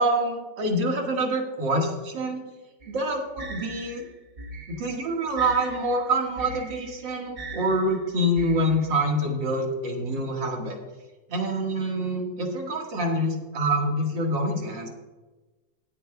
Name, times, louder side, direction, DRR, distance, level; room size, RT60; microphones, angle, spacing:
voice 1, 0.0-2.4 2.9-4.0 4.7-10.8 11.3-14.9, right 1 dB, 85° right, 1 dB, 2.6 m, -26 dB
sound 1, 2.8-9.1, right 2 dB, 35° right, 1.1 m, -41 dB
19.5 x 8.9 x 2.3 m, 1.2 s
omnidirectional pair, 1.9 m